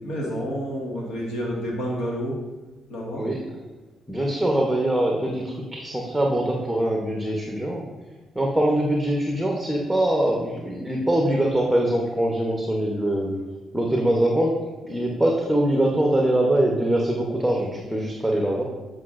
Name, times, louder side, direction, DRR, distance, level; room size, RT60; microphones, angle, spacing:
voice 1, 0.0-2.4 2.9-3.3, equal, 85° left, -2 dB, 1.7 m, -29 dB
voice 2, 4.1-7.8 8.3-13.4 13.7-14.5 14.8-18.6, right 1 dB, ahead, -1 dB, 0.9 m, -23 dB
8.1 x 4.8 x 2.5 m, 1.2 s
cardioid pair, 90°, 0 cm